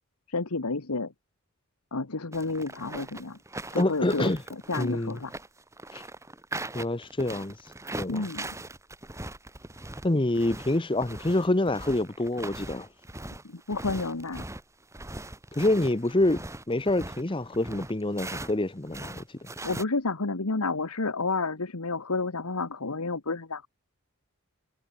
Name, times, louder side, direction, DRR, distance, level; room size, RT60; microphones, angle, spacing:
voice 1, 0.3-1.1 1.9-3.4 3.7-5.3 8.1-8.5 13.4-14.4 19.6-23.7, left 3 dB, 80° left, 1.4 m, -30 dB
sound 1, 2.3-18.6 18.8-19.8, right 2 dB, 15° right, 2.8 m, -40 dB
voice 2, 3.8-4.4 4.8-5.2 6.7-7.5 7.9-8.3 10.0-12.9 15.6-19.2, left 1 dB, 20° left, 0.9 m, -26 dB
head